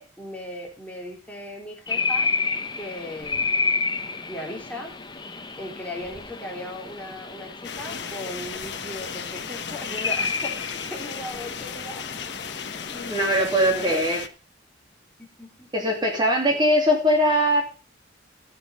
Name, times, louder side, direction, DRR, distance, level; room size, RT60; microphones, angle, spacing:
voice 1, 0.0-2.3 2.7-3.5 4.3-4.9 5.6-12.1 12.4-14.0 15.4-15.9 16.5-16.6, left 1 dB, 5° left, -1 dB, 3.5 m, -38 dB
sound 1, 1.9-13.9, left 4 dB, 25° left, 1.0 m, -31 dB
sound 2, 7.6-14.3, left 7 dB, 65° left, 1.1 m, -35 dB
voice 2, 13.1-14.2 15.7-17.6, equal, 25° right, 1 dB, 2.7 m, -21 dB
16.0 x 6.7 x 5.6 m, 0.34 s
head